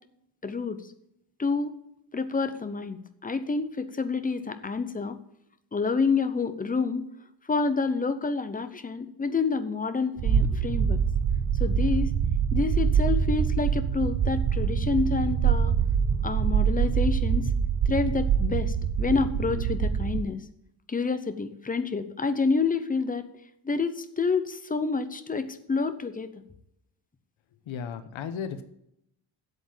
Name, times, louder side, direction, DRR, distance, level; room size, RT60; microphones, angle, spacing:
voice 1, 0.4-0.8 1.4-1.7 2.1-5.2 5.7-7.1 7.5-11.0 11.6-12.1 12.5-15.7 16.2-17.5 17.9-20.4 20.9-23.3 23.6-26.3, left 4 dB, 20° left, 10 dB, 0.7 m, -28 dB
sound 1, 10.2-20.2, right 7 dB, 40° right, 0.8 m, -25 dB
voice 2, 27.7-28.6, left 7 dB, 90° left, 10 dB, 1.1 m, -34 dB
8.2 x 7.8 x 8.8 m, 0.78 s
wide cardioid pair, 175°, 45 cm